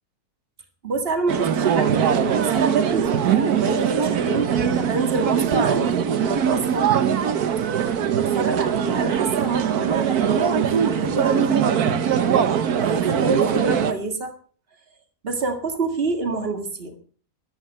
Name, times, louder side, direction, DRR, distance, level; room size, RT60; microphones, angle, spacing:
voice 1, 0.8-7.2 7.6-7.7 8.1-11.5 12.8-14.3 15.2-16.9, right 3 dB, 35° right, 7 dB, 2.1 m, -27 dB
sound 1, 1.3-13.9, right 8 dB, 70° right, 1.5 m, -21 dB
13.5 x 12.0 x 5.6 m, 0.42 s
omnidirectional pair, 1.7 m